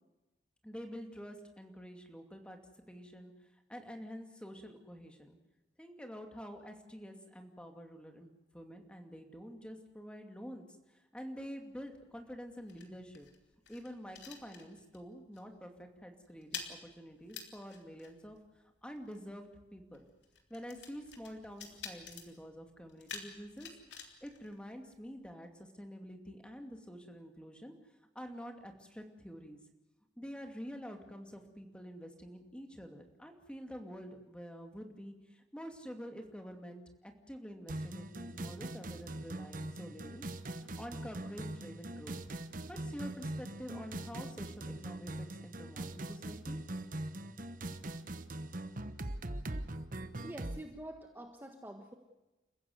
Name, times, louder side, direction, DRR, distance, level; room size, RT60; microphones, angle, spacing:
voice 1, 0.6-2.6 2.9-3.3 3.7-5.4 5.8-10.6 10.9-13.3 13.7-18.4 18.8-19.5 19.7-20.0 20.5-23.7 24.2-27.7 28.1-29.6 30.2-40.3 40.6-42.2 42.7-46.6, equal, 5° left, 4 dB, 2.5 m, -48 dB
sound 1, 11.7-15.1 15.3-15.6 15.9-25.3, left 6 dB, 70° left, 3.5 m, -50 dB
sound 2, 37.7-50.6, right 1 dB, 45° right, 1.2 m, -42 dB
voice 2, 50.2-51.9, right 1 dB, 10° right, 3 dB, 1.5 m, -47 dB
29.5 x 15.5 x 8.0 m, 1.1 s
head